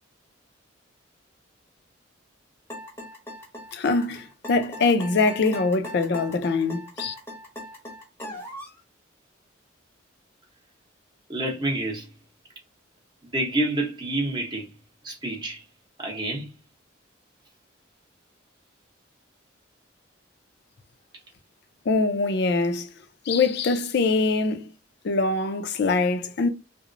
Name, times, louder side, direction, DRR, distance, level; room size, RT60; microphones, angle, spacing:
sound 1, 2.7-8.8, equal, 15° left, 0.7 m, -39 dB
voice 1, 3.7-7.1 21.9-22.9 23.3-24.7 25.0-26.5, left 3 dB, 55° left, 0.4 m, -23 dB
voice 2, 11.3-12.1 13.2-14.7 15.0-15.6 16.0-16.5, right 1 dB, 20° right, 0.7 m, -28 dB
2.9 x 2.0 x 2.5 m
head